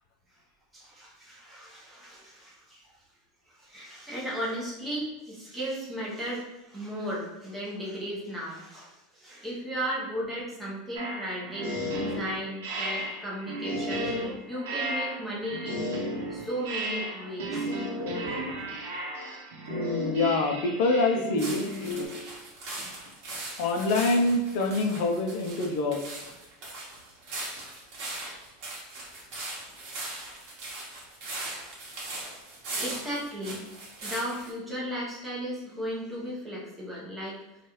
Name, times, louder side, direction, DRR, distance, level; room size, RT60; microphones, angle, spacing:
voice 1, 0.7-2.9 3.5-15.9 16.3-18.5 32.8-33.6 34.0-37.4, equal, 5° right, -6 dB, 0.8 m, -36 dB
sound 1, 10.9-22.1, equal, 80° right, 0.7 m, -34 dB
voice 2, 19.7-22.0 23.6-26.2, left 2 dB, 55° left, 3 dB, 0.4 m, -26 dB
sound 2, 21.4-34.5, right 2 dB, 40° right, 1.1 m, -39 dB
3.0 x 2.3 x 3.0 m, 0.97 s
supercardioid pair, 165°, 0 cm